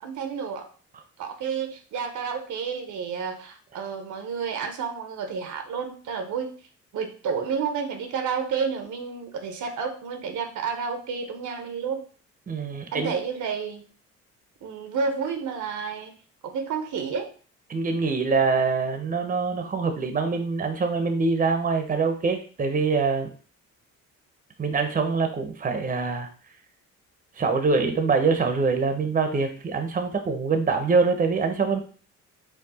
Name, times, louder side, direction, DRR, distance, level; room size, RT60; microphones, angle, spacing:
voice 1, 0.0-0.7 1.2-6.5 6.9-12.0 12.9-13.8 14.6-16.1 16.4-17.3, right 6 dB, 75° right, 6 dB, 0.8 m, -30 dB
voice 2, 12.5-13.1 17.7-23.3 24.6-26.3 27.4-31.8, right 4 dB, 25° right, 6 dB, 0.8 m, -24 dB
4.5 x 2.4 x 4.1 m, 0.41 s
cardioid pair, 90°, 30 cm